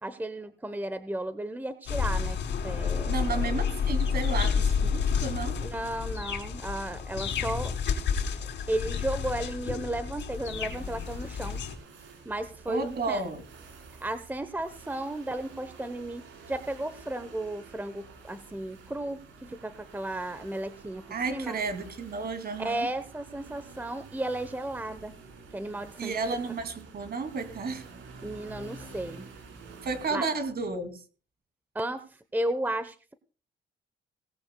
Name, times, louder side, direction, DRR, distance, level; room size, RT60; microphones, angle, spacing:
voice 1, 0.0-2.4 2.6-3.5 5.6-7.7 8.7-11.6 12.2-13.2 14.0-21.6 22.6-25.2 25.5-26.2 28.2-29.3 30.1-30.3 31.7-33.1, right 1 dB, 10° right, 12 dB, 0.9 m, -34 dB
sound 1, 1.9-11.7, left 6 dB, 65° left, 3.3 m, -30 dB
voice 2, 3.1-5.6 12.7-13.4 21.1-22.9 26.0-27.8 29.8-31.0, right 4 dB, 50° right, 8 dB, 2.7 m, -32 dB
sound 2, 10.3-30.2, right 4 dB, 80° right, 4.3 m, -49 dB
18.5 x 15.5 x 2.3 m, 0.36 s
cardioid pair, 90°, 20 cm